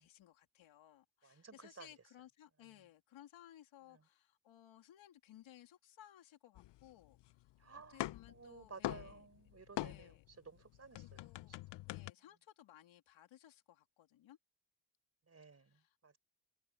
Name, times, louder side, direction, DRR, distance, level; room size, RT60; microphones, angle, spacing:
voice 1, 0.0-9.3 9.8-10.2 10.9-11.6 11.9-14.4 15.6-16.2, left 12 dB, 80° left, 3.2 m, -61 dB
voice 2, 1.2-1.9 7.6-8.0 8.3-10.1 10.4-11.2 15.3-15.7 16.0-16.2, right 4 dB, 30° right, 4.2 m, -55 dB
sound 1, 6.6-7.5 7.8-10.3 10.6-12.1, left 16 dB, 65° left, 0.6 m, -44 dB
cardioid pair, 80°, 46 cm